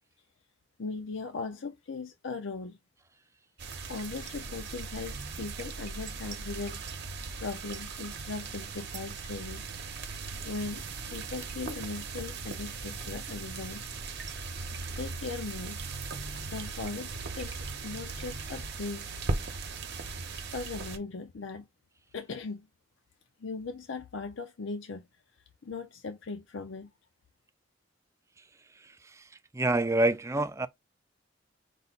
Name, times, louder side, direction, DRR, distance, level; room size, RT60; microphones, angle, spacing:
voice 1, 0.8-2.8 3.9-6.8 7.4-9.7 10.4-10.8 11.1-13.8 14.9-15.8 16.5-19.1 19.3-19.6 20.3-21.7 22.1-22.7 23.4-25.1 25.6-26.9, left 4 dB, 65° left, 0.6 m, -39 dB
sound 1, 3.6-21.0, right 3 dB, 55° right, 0.9 m, -38 dB
voice 2, 28.8-29.2 29.5-30.7, right 2 dB, 15° right, 0.4 m, -27 dB
5.4 x 2.2 x 4.0 m
head